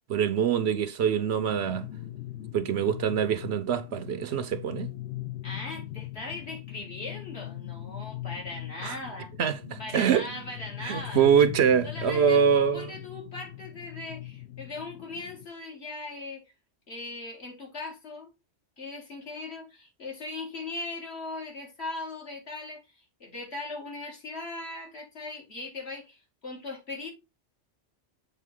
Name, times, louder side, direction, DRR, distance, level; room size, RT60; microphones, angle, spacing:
voice 1, 0.1-1.9 2.5-4.9 8.8-9.0 9.4-10.2 10.8-12.9, right 7 dB, 65° right, 0.9 m, -24 dB
sound 1, 1.3-15.5, left 14 dB, 85° left, 1.1 m, -40 dB
voice 2, 5.4-9.3 9.8-11.3 11.8-12.4 12.7-16.4 16.9-18.3 18.8-27.1, left 2 dB, 60° left, 2.3 m, -39 dB
7.5 x 3.5 x 3.6 m
omnidirectional pair, 1.2 m